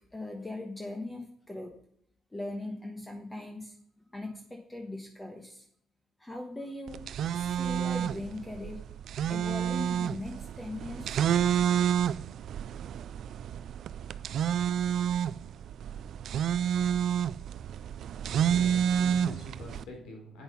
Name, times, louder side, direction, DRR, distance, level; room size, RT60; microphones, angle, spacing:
voice 1, 0.1-1.7 2.3-5.7 6.2-7.0 7.3-8.8 9.3-11.2, left 2 dB, 15° left, 3 dB, 1.3 m, -40 dB
sound 1, 6.9-19.8, right 9 dB, 70° right, 0.3 m, -29 dB
voice 2, 18.5-20.4, left 1 dB, 90° left, 1 dB, 3.6 m, -45 dB
8.7 x 7.1 x 5.3 m, 0.66 s
cardioid pair, 90°, 0 cm